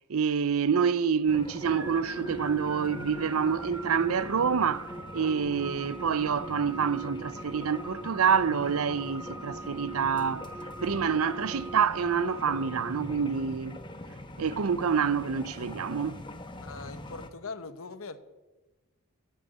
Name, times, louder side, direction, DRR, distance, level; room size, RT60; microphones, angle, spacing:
voice 1, 0.1-10.5 10.8-13.8 14.4-16.2, right 6 dB, 80° right, 0.6 m, -27 dB
sound 1, 1.3-17.3, left 1 dB, 20° left, 1.1 m, -43 dB
sound 2, 1.6-13.6, right 2 dB, 10° right, 0.4 m, -41 dB
voice 2, 16.6-18.2, left 4 dB, 75° left, 1.0 m, -41 dB
12.5 x 8.9 x 8.7 m
head